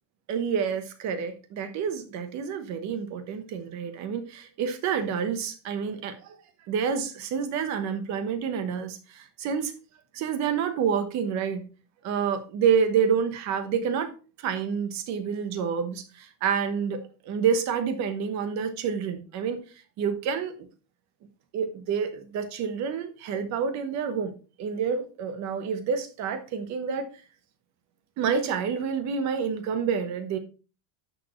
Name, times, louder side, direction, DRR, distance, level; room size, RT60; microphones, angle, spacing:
voice 1, 0.3-6.4 6.6-9.7 10.1-11.6 12.0-14.1 14.4-19.6 20.0-20.7 21.5-24.3 24.6-27.1 28.2-30.4, right 7 dB, 35° right, 9 dB, 1.1 m, -28 dB
11.0 x 6.5 x 3.1 m, 0.35 s
cardioid pair, 175°, 49 cm